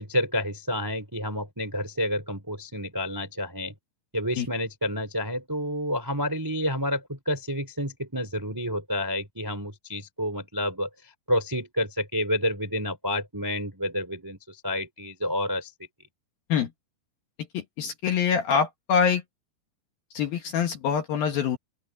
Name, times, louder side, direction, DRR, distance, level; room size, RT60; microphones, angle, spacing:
voice 1, 0.0-3.7 4.1-10.9 11.3-15.7, equal, 5° right, 2.4 m, -29 dB
voice 2, 17.5-19.2 20.1-21.6, left 7 dB, 65° left, 2.5 m, -25 dB
open air
omnidirectional pair, 5.9 m